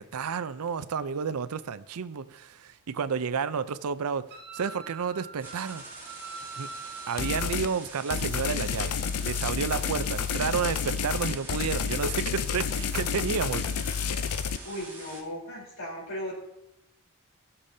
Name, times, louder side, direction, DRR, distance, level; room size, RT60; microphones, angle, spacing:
voice 1, 0.0-4.3 4.5-5.8 6.6-6.7 7.1-8.9 9.2-14.1, right 6 dB, 80° right, 14 dB, 0.5 m, -31 dB
Wind instrument woodwind instrument, 4.3-7.5, right 5 dB, 50° right, 2.3 m, -43 dB
sound 1, 5.4-15.2, right 3 dB, 10° right, 2.8 m, -45 dB
sound 2, 7.2-7.7 8.1-14.6, left 7 dB, 80° left, 0.5 m, -30 dB
voice 2, 14.4-16.3, equal, 60° left, -3 dB, 3.9 m, -37 dB
19.0 x 6.8 x 2.8 m, 0.88 s
head